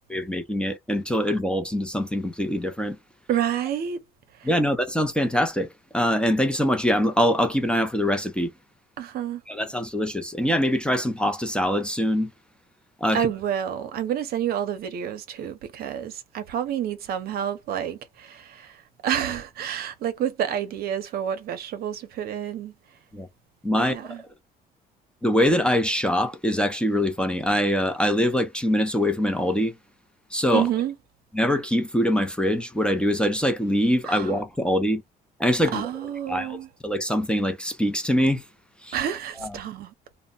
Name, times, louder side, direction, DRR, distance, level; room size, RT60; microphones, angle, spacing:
voice 1, 0.1-3.0 4.4-5.7 5.9-8.5 9.5-12.3 13.0-13.3 23.1-23.3 23.6-23.9 25.2-29.7 30.3-30.7 31.3-35.0 35.4-35.8 36.3-36.6 36.8-38.4 38.8-39.0 39.4-39.6, equal, 5° left, 0.5 m, -23 dB
voice 2, 3.3-4.0 4.3-4.5 9.0-9.4 13.1-22.7 23.8-24.2 30.5-30.9 34.0-34.3 35.7-36.7 38.9-39.9, right 9 dB, 65° right, 0.7 m, -29 dB
2.1 x 2.1 x 3.8 m
cardioid pair, 110°, 17 cm